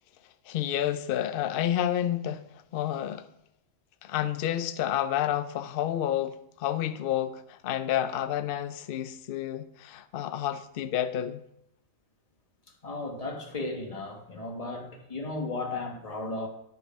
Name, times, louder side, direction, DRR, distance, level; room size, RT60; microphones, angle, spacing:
voice 1, 0.5-2.5 2.7-3.3 4.0-11.4, left 11 dB, 65° left, 0.5 m, -30 dB
voice 2, 12.8-16.5, left 2 dB, 25° left, 1.3 m, -35 dB
10.0 x 5.3 x 5.3 m
omnidirectional pair, 1.5 m